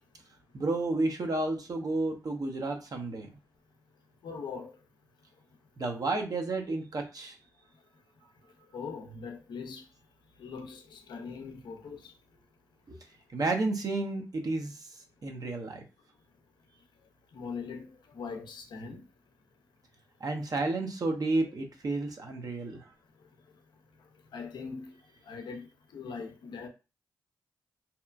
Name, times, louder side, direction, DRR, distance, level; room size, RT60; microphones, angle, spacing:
voice 1, 0.5-3.3 5.8-7.4 12.9-13.0 13.3-15.0 15.2-15.8 20.2-22.8, right 2 dB, 55° right, 0.7 m, -31 dB
voice 2, 4.2-4.7 8.7-9.8 10.4-12.1 17.3-17.9 18.1-19.0 24.3-24.9 25.3-25.7 25.9-26.7, left 5 dB, 75° left, 0.5 m, -41 dB
2.8 x 2.1 x 2.4 m
supercardioid pair, 45°, 8 cm